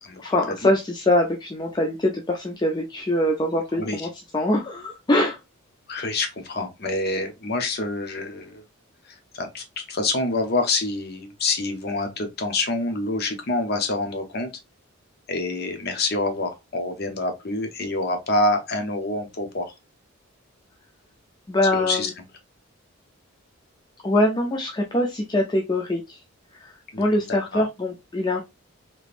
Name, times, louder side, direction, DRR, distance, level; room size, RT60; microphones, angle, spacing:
voice 1, 0.2-5.4 21.5-22.1 24.0-26.2 26.5-28.4, left 1 dB, 20° left, 0.4 m, -23 dB
voice 2, 5.9-8.6 9.0-14.5 15.3-19.7 21.7-22.1 26.9-27.6, left 2 dB, 45° left, 0.7 m, -27 dB
3.5 x 2.9 x 2.5 m
head